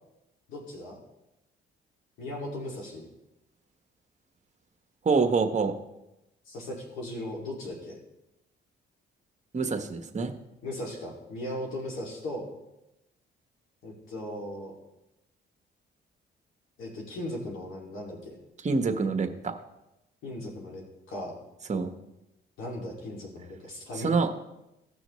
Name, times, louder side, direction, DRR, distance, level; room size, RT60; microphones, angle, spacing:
voice 1, 0.5-1.0 2.2-3.1 6.5-7.9 10.6-12.5 13.8-14.7 16.8-18.3 20.2-21.4 22.6-24.1, left 1 dB, 80° left, -2 dB, 2.5 m, -37 dB
voice 2, 5.0-5.7 9.5-10.3 18.6-19.5 21.7-21.9 24.0-24.3, right 4 dB, 35° right, 6 dB, 1.2 m, -26 dB
16.5 x 6.2 x 3.1 m, 0.92 s
cardioid pair, 90°, 20 cm